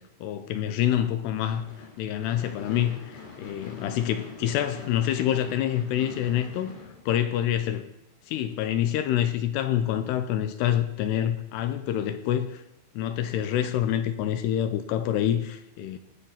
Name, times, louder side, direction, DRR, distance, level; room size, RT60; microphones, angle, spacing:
voice 1, 0.2-1.6 2.0-6.8 7.1-7.9 8.3-12.6 13.0-16.0, left 11 dB, 80° left, 10 dB, 2.5 m, -27 dB
Gunshot gunfire / Fireworks, 1.5-7.7, left 4 dB, 50° left, 5.8 m, -44 dB
19.5 x 6.9 x 5.6 m, 0.84 s
omnidirectional pair, 5.3 m